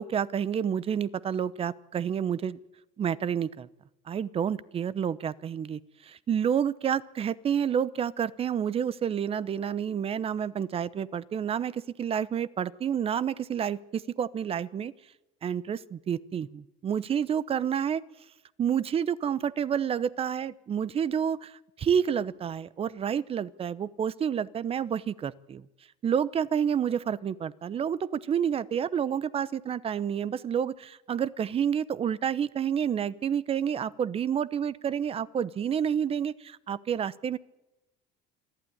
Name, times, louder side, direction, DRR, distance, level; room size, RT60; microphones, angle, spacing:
voice 1, 0.0-2.6 3.0-3.7 4.1-14.9 15.4-18.0 18.6-25.6 26.0-37.4, right 8 dB, 35° right, 19 dB, 0.9 m, -29 dB
26.5 x 12.0 x 10.0 m, 0.97 s
supercardioid pair, 115°, 17 cm